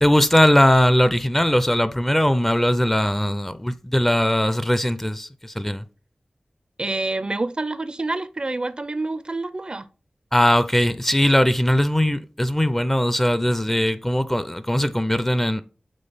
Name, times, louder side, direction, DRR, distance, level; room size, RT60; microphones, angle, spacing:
voice 1, 0.0-5.8 10.3-15.6, left 1 dB, 10° left, 0.5 m, -20 dB
voice 2, 6.8-9.9, right 2 dB, 40° right, 0.5 m, -27 dB
5.3 x 3.9 x 5.6 m
wide cardioid pair, 70°, 2 cm